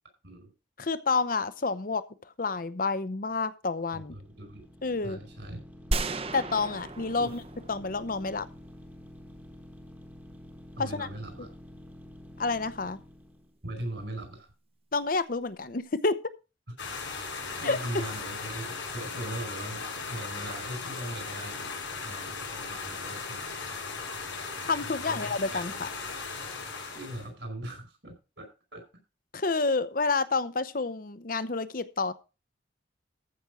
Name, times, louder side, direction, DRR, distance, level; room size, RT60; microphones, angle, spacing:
voice 1, 0.8-2.0 2.4-4.2 4.8-5.2 6.3-7.4 7.7-8.5 10.8-11.1 12.4-13.0 14.9-16.2 17.6-17.8 24.7-25.9 29.3-32.1, left 3 dB, 50° left, 14 dB, 0.8 m, -29 dB
sound 1, 3.8-13.6, left 1 dB, 10° right, 1.2 m, -49 dB
voice 2, 3.9-4.7 5.0-5.6 7.2-7.3 10.8-11.5 13.6-14.5 17.6-19.8 20.1-23.5 24.9-25.8 26.9-28.5 28.7-28.8, right 1 dB, 70° right, 5 dB, 5.0 m, -40 dB
sound 2, 5.9-8.2, right 2 dB, 30° right, 0.8 m, -34 dB
sound 3, 16.8-27.3, left 4 dB, 85° left, 4.8 m, -37 dB
14.0 x 6.1 x 5.0 m, 0.31 s
head